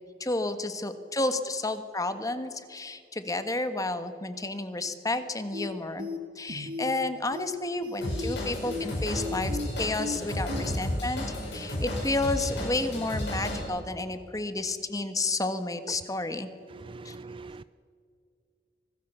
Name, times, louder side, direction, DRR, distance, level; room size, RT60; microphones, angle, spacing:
voice 1, 0.2-6.1 6.4-11.2 11.5-16.5 17.0-17.1, left 2 dB, 20° left, 9 dB, 1.4 m, -31 dB
sound 1, 5.5-5.7 6.0-6.2 6.5-7.0 7.3-7.5 7.8-8.3 8.7-8.8 9.2-9.7 10.0-10.2 10.5-10.6, left 3 dB, 55° right, 2.0 m, -35 dB
Drum kit / Drum, 8.0-13.6, left 1 dB, 85° left, 7.1 m, -33 dB
voice 2, 16.7-17.6, right 3 dB, 30° right, 15 dB, 0.4 m, -43 dB
25.5 x 18.0 x 6.9 m, 2.3 s
head